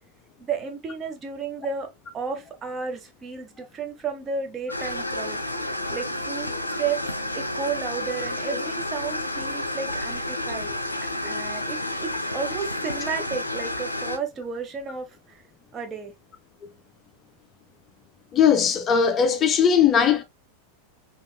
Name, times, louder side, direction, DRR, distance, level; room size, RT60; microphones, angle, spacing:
voice 1, 0.4-5.4 5.9-7.0 7.3-10.7 11.0-15.4 15.7-16.1, right 5 dB, 25° right, 0.9 m, -33 dB
sound 1, 4.7-14.2, left 1 dB, 85° left, 0.5 m, -30 dB
voice 2, 18.3-20.2, left 7 dB, 25° left, 0.4 m, -19 dB
4.2 x 2.9 x 2.3 m
figure-of-eight pair, 90°, 0 cm